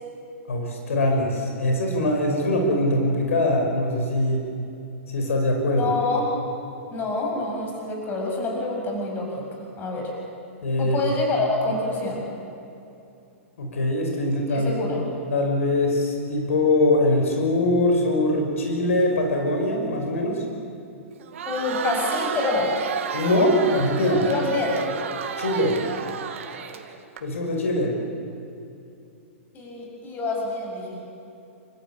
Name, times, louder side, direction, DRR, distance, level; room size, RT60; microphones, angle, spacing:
voice 1, 0.5-4.4 5.1-5.9 10.6-11.0 13.6-14.7 15.3-20.4 23.1-24.3 25.4-25.8 27.2-27.9, left 1 dB, 80° left, 2 dB, 5.4 m, -22 dB
voice 2, 5.8-6.3 6.9-9.3 9.8-10.1 10.8-12.2 14.5-15.0 21.5-22.7 24.2-24.8 29.5-31.0, left 3 dB, 25° left, 0 dB, 7.6 m, -26 dB
Crowd, 21.2-27.2, right 7 dB, 70° right, 2.3 m, -32 dB
29.5 x 15.0 x 8.5 m, 2.7 s
hypercardioid pair, 130°, 7 cm